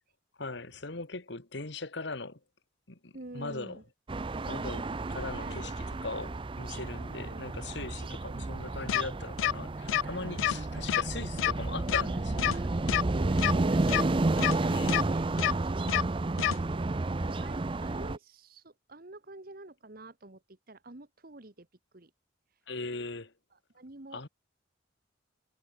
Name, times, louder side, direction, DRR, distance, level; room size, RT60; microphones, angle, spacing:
voice 1, 0.4-2.4 2.9-3.8 4.5-12.6 14.6-14.9 22.7-23.3 24.1-24.3, left 3 dB, 60° left, 1.7 m, -40 dB
voice 2, 3.1-3.8 5.4-5.7 7.1-7.5 8.2-8.6 10.0-10.8 12.5-12.6 13.1-21.7 21.9-22.1 23.5-24.3, right 2 dB, 45° right, 1.5 m, -48 dB
sound 1, 4.1-18.2, right 2 dB, 25° right, 0.5 m, -31 dB
sound 2, 8.9-9.0 9.4-9.5 9.9-10.0 10.4-10.5 10.9-11.0 11.4-11.5 11.9-12.0 12.4-12.5 12.9-13.0 13.4-13.5 13.9-14.0 14.4-14.5 14.9-15.0 15.4-15.5 15.9-16.0 16.4-16.5, left 11 dB, 80° left, 0.3 m, -27 dB
head